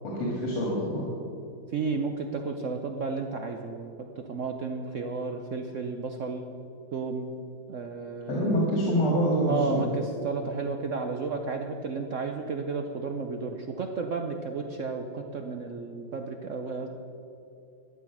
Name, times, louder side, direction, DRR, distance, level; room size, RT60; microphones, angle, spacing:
voice 1, 0.0-1.0 8.3-9.8, equal, 90° left, -4 dB, 3.0 m, -26 dB
voice 2, 1.7-6.5 6.9-7.3 7.7-8.6 9.5-16.9, right 4 dB, 80° right, 4 dB, 0.6 m, -33 dB
14.0 x 9.4 x 6.0 m, 2.6 s
omnidirectional pair, 2.3 m